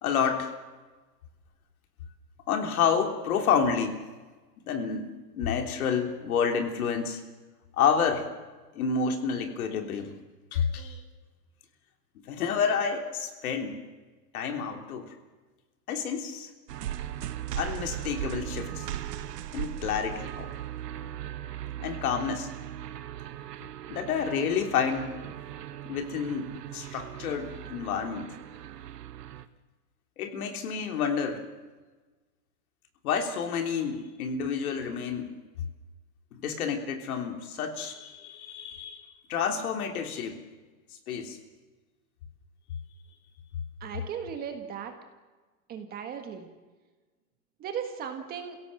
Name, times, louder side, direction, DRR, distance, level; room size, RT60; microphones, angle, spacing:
voice 1, 0.0-0.5 2.5-4.0 4.6-5.1 5.3-7.2 7.8-8.3 8.7-10.1 10.5-11.0 12.3-13.8 14.3-15.1 15.9-16.5 17.5-18.9 19.5-20.5 21.8-22.5 23.9-25.3 25.9-28.3 30.2-31.4 33.0-35.3 36.3-40.4 41.1-41.4, left 6 dB, 60° left, 5 dB, 3.5 m, -29 dB
sound 1, 16.7-29.5, right 12 dB, 80° right, 1.5 m, -38 dB
voice 2, 43.8-44.9 45.7-46.5 47.6-48.6, right 7 dB, 20° right, 6 dB, 1.6 m, -36 dB
28.0 x 17.0 x 7.7 m, 1.3 s
supercardioid pair, 165°, 48 cm